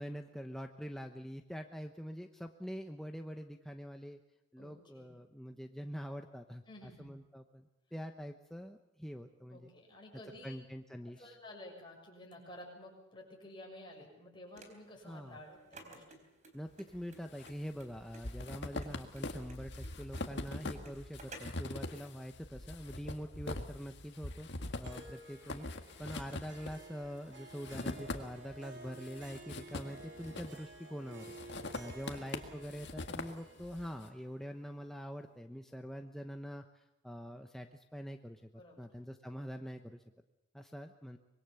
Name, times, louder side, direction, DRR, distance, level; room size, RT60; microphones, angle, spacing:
voice 1, 0.0-4.2 4.5-9.7 10.4-11.3 15.0-15.4 16.5-24.5 24.8-31.4 31.7-38.5 38.8-40.0 40.5-41.2, equal, ahead, 4 dB, 0.9 m, -45 dB
voice 2, 4.6-5.1 6.7-7.1 9.5-10.6 11.0-16.2 38.5-38.9, left 1 dB, 25° left, 0 dB, 6.8 m, -52 dB
sound 1, 14.5-21.7, right 2 dB, 35° right, 3.9 m, -54 dB
sound 2, 16.9-17.5 17.8-28.6 28.9-30.8 31.2-33.9, left 2 dB, 55° left, 1.9 m, -43 dB
Harp, 24.8-35.4, right 2 dB, 60° right, 3.7 m, -54 dB
25.0 x 21.5 x 7.0 m, 0.93 s
head